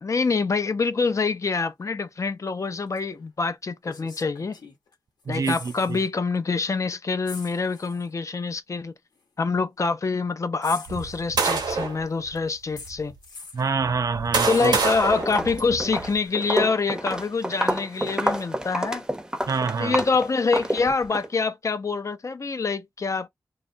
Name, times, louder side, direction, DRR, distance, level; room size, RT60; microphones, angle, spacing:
voice 1, 0.0-4.6 5.3-8.9 9.4-13.1 14.5-19.1 19.8-23.3, left 4 dB, 50° left, 0.4 m, -26 dB
sound 1, 3.0-3.1 3.8-4.9 5.2-6.1 6.4-6.5 7.2-8.1 9.1-9.2 10.6-11.7 12.8-13.7 14.5-15.4 17.1-17.2, left 3 dB, 75° left, 0.9 m, -44 dB
voice 2, 5.3-6.0 13.5-14.8 19.5-20.0, right 5 dB, 55° right, 0.4 m, -26 dB
sound 2, 10.9-12.0 12.8-12.9 13.8-16.2, right 4 dB, 85° right, 0.8 m, -26 dB
Walk footsteps, 14.6-14.9 15.2-21.3, equal, 10° right, 0.6 m, -28 dB
2.3 x 2.0 x 2.6 m
cardioid pair, 45°, 7 cm